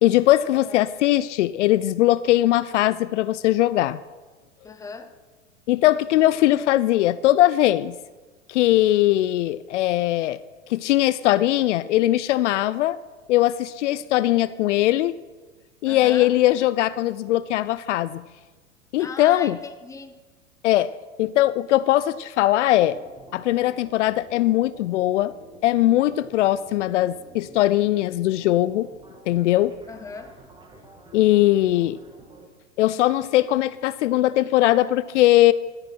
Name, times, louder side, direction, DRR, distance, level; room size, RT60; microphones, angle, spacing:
voice 1, 0.0-4.0 5.7-7.9 8.5-10.4 10.7-13.0 13.3-15.1 15.8-18.2 18.9-19.6 20.6-20.9 21.2-23.0 23.3-25.3 25.6-28.9 29.3-29.8 31.1-32.0 32.8-35.5, left 15 dB, 65° left, 17 dB, 0.5 m, -20 dB
voice 2, 0.5-0.9 4.6-5.1 15.9-16.3 19.0-20.2 29.9-30.4, left 4 dB, 10° left, 9 dB, 0.7 m, -38 dB
sound 1, 22.8-32.5, right 2 dB, 10° right, 1.5 m, -49 dB
14.0 x 6.6 x 6.1 m, 1.3 s
hypercardioid pair, 105°, 39 cm